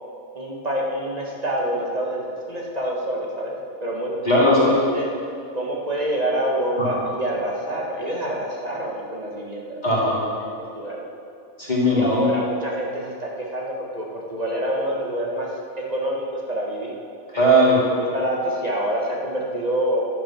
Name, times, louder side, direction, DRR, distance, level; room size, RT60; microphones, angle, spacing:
voice 1, 0.3-4.1 4.4-5.1 5.5-9.8 10.2-11.0 11.9-16.9 17.6-20.0, right 1 dB, 25° right, -3 dB, 1.6 m, -27 dB
voice 2, 4.2-4.7 6.8-6.9 9.8-10.2 11.6-12.3 17.3-17.8, equal, 30° left, -7 dB, 2.5 m, -18 dB
11.0 x 8.7 x 5.9 m, 2.4 s
omnidirectional pair, 1.6 m